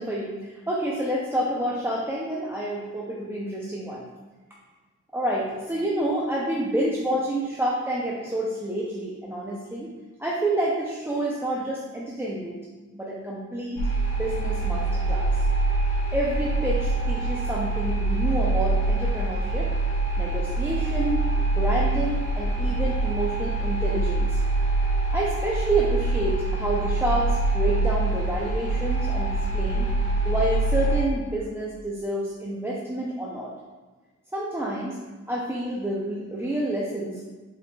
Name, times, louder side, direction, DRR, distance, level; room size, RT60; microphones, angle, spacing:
voice 1, 0.0-4.0 5.1-9.9 10.2-12.6 12.9-13.8 14.2-15.4 16.1-19.7 20.2-21.3 21.5-24.4 25.1-29.9 30.2-33.5 34.3-35.0 35.3-37.2, right 1 dB, 10° right, -4 dB, 0.5 m, -28 dB
sound 1, 13.8-31.0, right 2 dB, 70° left, 1.3 m, -25 dB
4.7 x 4.1 x 2.3 m, 1.3 s
cardioid pair, 95°, 30 cm